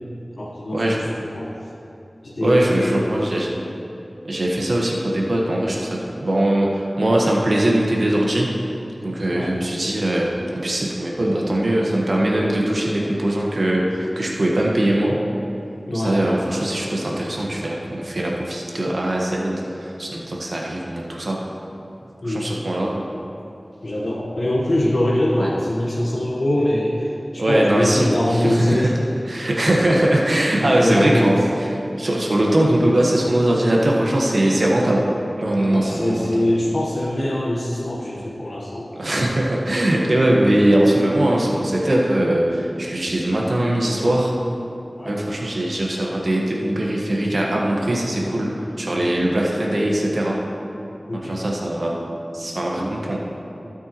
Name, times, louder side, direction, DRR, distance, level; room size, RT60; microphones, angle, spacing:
voice 1, 0.4-1.5 2.2-3.2 9.3-9.5 15.9-16.2 22.2-22.5 23.8-29.1 30.6-31.3 34.7-35.0 35.7-38.9 45.0-45.2 51.1-51.4, left 1 dB, 70° left, -4 dB, 1.1 m, -23 dB
voice 2, 2.4-3.5 4.2-8.5 9.0-15.2 15.9-21.4 22.2-23.1 25.4-25.5 27.4-28.9 29.3-35.0 35.4-36.5 38.9-44.3 45.0-48.5 48.8-50.4 51.1-52.0 52.3-53.2, right 1 dB, 70° right, -2 dB, 1.3 m, -21 dB
16.0 x 8.0 x 3.0 m, 2.8 s
wide cardioid pair, 55°, 0 cm